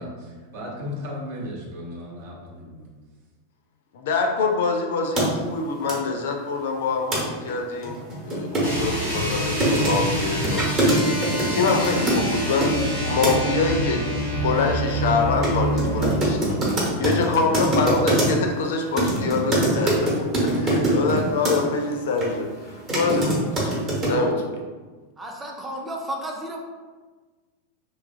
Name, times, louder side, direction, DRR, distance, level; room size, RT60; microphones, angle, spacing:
voice 1, 0.0-2.8, left 1 dB, 50° right, -3 dB, 0.7 m, -35 dB
voice 2, 3.9-8.0 8.2-16.5 17.0-23.7 24.1-24.6, left 4 dB, 55° left, 2 dB, 0.3 m, -25 dB
sound 1, 5.2-5.3 5.9-6.0 7.1-7.2 7.5-7.6 7.8-12.8 13.2-13.5 15.4-15.5 15.8-18.5 19.0-21.6 22.2-22.3 22.7-24.2, right 1 dB, 30° right, 1.0 m, -23 dB
sound 2, 8.6-16.1, equal, 85° right, 1.0 m, -27 dB
sound 3, 12.7-18.5, left 1 dB, 65° right, 1.3 m, -35 dB
voice 3, 25.2-26.6, right 1 dB, 10° right, 0 dB, 0.5 m, -32 dB
2.9 x 2.4 x 2.4 m, 1.3 s
figure-of-eight pair, 90°, 0 cm